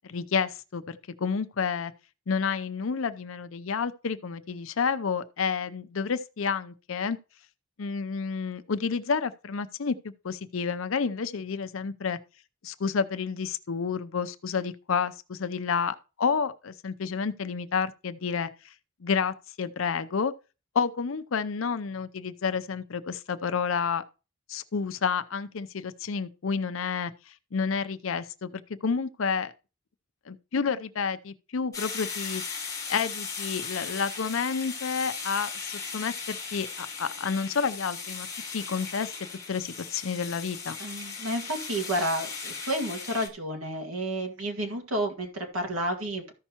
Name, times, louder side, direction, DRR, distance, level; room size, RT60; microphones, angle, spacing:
voice 1, 0.0-1.9 2.3-7.2 7.8-12.2 12.6-18.7 19.0-20.3 20.7-24.0 24.5-29.5 30.3-32.4 32.9-38.3 38.5-39.1 39.5-40.8, left 5 dB, 75° left, 0.6 m, -30 dB
sound 1, 31.7-43.3, left 5 dB, 15° left, 1.2 m, -37 dB
voice 2, 40.8-46.3, right 1 dB, 85° right, 1.9 m, -31 dB
14.0 x 5.6 x 2.9 m
head